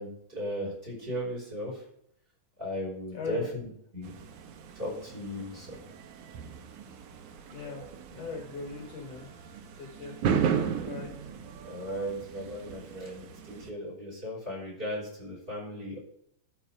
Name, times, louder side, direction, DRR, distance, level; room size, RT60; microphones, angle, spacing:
voice 1, 0.0-1.8 2.6-3.7 3.9-4.1 4.7-5.8 11.6-16.0, equal, 15° right, -3 dB, 5.2 m, -36 dB
voice 2, 3.1-3.5 7.5-7.8 8.1-9.3 9.8-10.2 10.8-11.1, left 4 dB, 55° left, 1 dB, 2.4 m, -38 dB
sound 1, 4.0-13.7, right 7 dB, 75° right, 2.4 m, -35 dB
13.0 x 5.6 x 4.8 m, 0.70 s
omnidirectional pair, 3.7 m